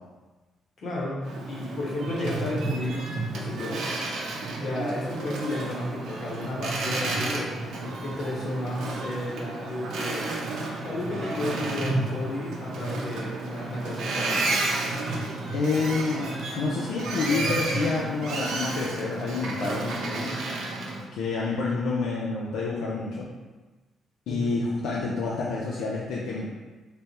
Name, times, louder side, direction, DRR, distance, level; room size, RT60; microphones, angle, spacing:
voice 1, 0.8-1.2 1.5-3.8 4.5-7.5 8.0-10.3 10.8-14.4 24.3-24.5, left 1 dB, 55° left, -4 dB, 1.1 m, -32 dB
Boat Water vehicle, 1.2-21.0, right 2 dB, 80° right, 0.6 m, -31 dB
voice 2, 15.5-16.3 16.6-20.4 21.1-23.3 24.3-26.5, left 3 dB, 85° left, -4 dB, 0.5 m, -28 dB
3.4 x 2.1 x 4.2 m, 1.2 s
cardioid pair, 90°, 0 cm